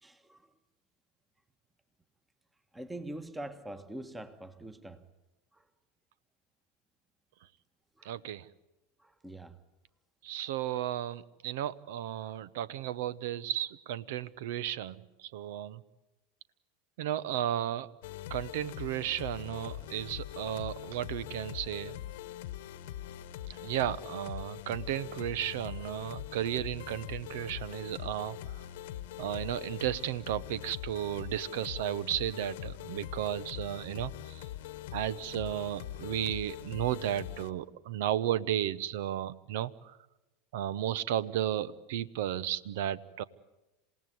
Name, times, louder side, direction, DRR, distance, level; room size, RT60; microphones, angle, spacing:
voice 1, 0.0-0.4 2.7-5.0 5.5-5.6 8.0-8.1 9.0-9.6 10.7-10.8 12.2-12.3, right 1 dB, 10° right, 1.5 m, -44 dB
voice 2, 8.0-8.4 10.2-15.0 15.2-15.8 17.0-17.9 18.3-21.9 23.5-28.4 29.2-34.4 34.9-39.7 40.5-43.2, right 11 dB, 70° right, 0.9 m, -34 dB
sound 1, 18.0-37.5, left 13 dB, 70° left, 1.1 m, -42 dB
28.0 x 17.0 x 9.4 m
hypercardioid pair, 90°, 0 cm